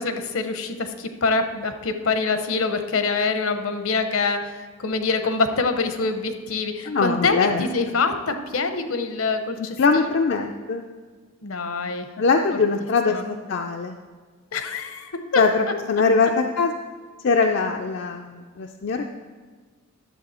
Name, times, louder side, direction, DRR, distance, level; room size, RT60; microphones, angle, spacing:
voice 1, 0.0-10.2 11.4-12.1 13.1-13.2 14.5-15.5, left 4 dB, 70° left, 8 dB, 0.8 m, -25 dB
voice 2, 6.9-7.6 9.6-10.8 12.2-13.2 13.5-14.0 15.4-16.7 17.2-19.1, left 4 dB, 55° left, 4 dB, 0.4 m, -22 dB
11.0 x 7.0 x 4.2 m, 1.5 s
head